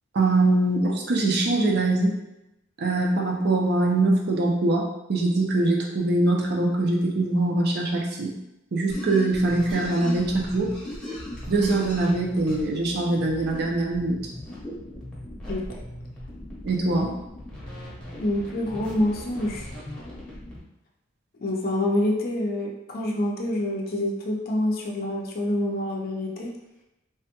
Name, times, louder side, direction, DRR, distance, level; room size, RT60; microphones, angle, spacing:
voice 1, 0.1-2.1 2.8-8.3 8.7-10.7 11.5-14.2 16.6-17.1, right 2 dB, 55° right, -1 dB, 0.5 m, -23 dB
sound 1, 8.9-20.6, left 1 dB, 5° left, 0.8 m, -38 dB
voice 2, 15.5-15.8 18.2-19.6 21.4-26.5, left 1 dB, 50° left, -2 dB, 0.5 m, -27 dB
3.4 x 2.1 x 2.8 m, 0.92 s
head